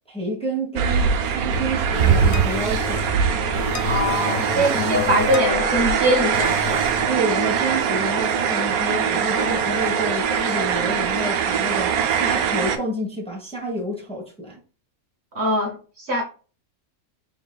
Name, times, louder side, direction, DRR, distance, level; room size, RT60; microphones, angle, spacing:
voice 1, 0.1-3.2 4.5-5.2 7.1-14.6, right 1 dB, 5° left, 1.2 m, -29 dB
sound 1, 0.8-12.8, right 7 dB, 90° right, 1.1 m, -22 dB
sound 2, 1.9-10.6, left 7 dB, 75° left, 1.0 m, -33 dB
voice 2, 3.8-6.9 15.3-16.2, equal, 50° right, 1.1 m, -23 dB
4.0 x 3.9 x 2.3 m
omnidirectional pair, 1.5 m